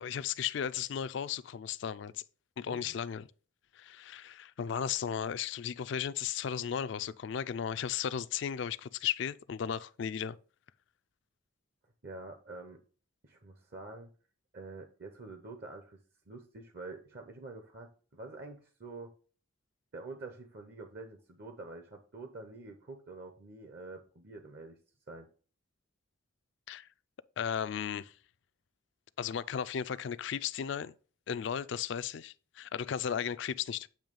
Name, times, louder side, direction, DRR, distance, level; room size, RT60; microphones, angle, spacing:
voice 1, 0.0-2.2 2.6-3.3 3.7-10.4 26.7-26.9 27.4-28.1 29.2-30.9 31.3-33.9, left 8 dB, 60° left, 0.3 m, -35 dB
voice 2, 12.0-12.8 13.2-14.1 14.5-16.0 16.3-19.1 19.9-24.8 25.1-25.3, right 3 dB, 50° right, 0.8 m, -47 dB
8.7 x 3.1 x 5.3 m
head